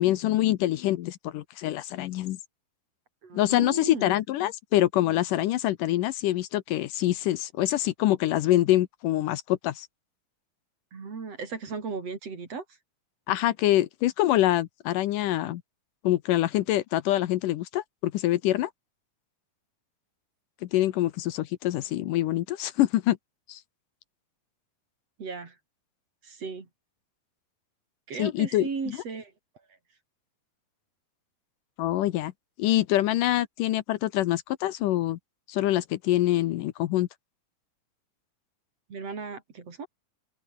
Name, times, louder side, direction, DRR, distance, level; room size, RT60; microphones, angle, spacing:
voice 1, 0.0-2.4 3.3-9.9 13.3-15.6 16.0-18.7 20.6-23.2 23.5-23.6 28.2-29.0 31.8-32.3 32.6-35.2 35.5-37.1, left 14 dB, 75° left, 2.4 m, -25 dB
voice 2, 3.2-4.2 10.9-12.6 25.2-25.6 26.2-26.7 28.1-29.3 38.9-39.9, right 5 dB, 45° right, 4.7 m, -36 dB
open air
omnidirectional pair, 4.0 m